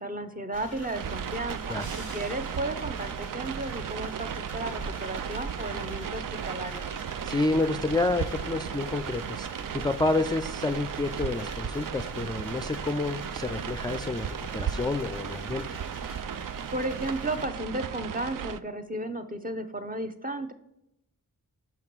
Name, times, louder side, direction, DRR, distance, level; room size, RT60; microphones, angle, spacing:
voice 1, 0.0-6.8 16.7-20.5, right 1 dB, 25° right, 7 dB, 0.8 m, -34 dB
sound 1, 0.5-17.5, right 1 dB, 45° right, 1.6 m, -45 dB
sound 2, 0.9-18.6, right 8 dB, 65° right, 0.5 m, -35 dB
sound 3, 1.8-3.0, right 2 dB, 85° right, 1.4 m, -48 dB
voice 2, 7.2-15.6, left 2 dB, 15° left, 7 dB, 0.4 m, -29 dB
5.9 x 5.7 x 4.6 m, 0.81 s
cardioid pair, 50°, 35 cm